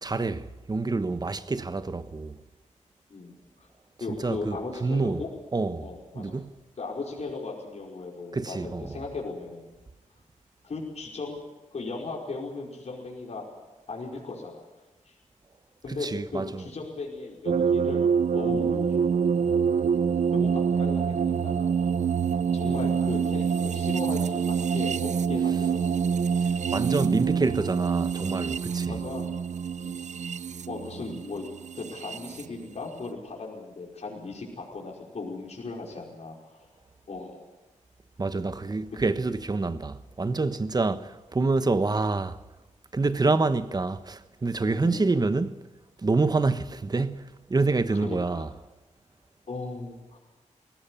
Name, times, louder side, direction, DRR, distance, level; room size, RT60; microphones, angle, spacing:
voice 1, 0.0-2.4 4.1-5.2 5.5-5.9 6.1-6.6 8.3-9.0 16.0-16.7 26.7-29.0 38.2-42.4 42.9-45.6 46.0-48.5, right 3 dB, 30° right, 1.2 m, -27 dB
voice 2, 4.0-5.3 5.8-6.4 6.8-9.7 10.6-11.4 11.7-13.5 13.9-14.6 15.1-15.2 15.8-19.0 20.3-21.8 22.5-26.1 26.6-26.7 28.9-29.4 29.8-30.4 30.7-31.5 31.7-36.6 37.1-37.4 41.8-42.0 44.8-45.0 47.9-48.4 49.5-50.2, left 3 dB, 55° left, 5.2 m, -37 dB
sound 1, 17.5-32.5, right 6 dB, 65° right, 0.7 m, -26 dB
21.0 x 17.5 x 10.0 m
wide cardioid pair, 110°, 13 cm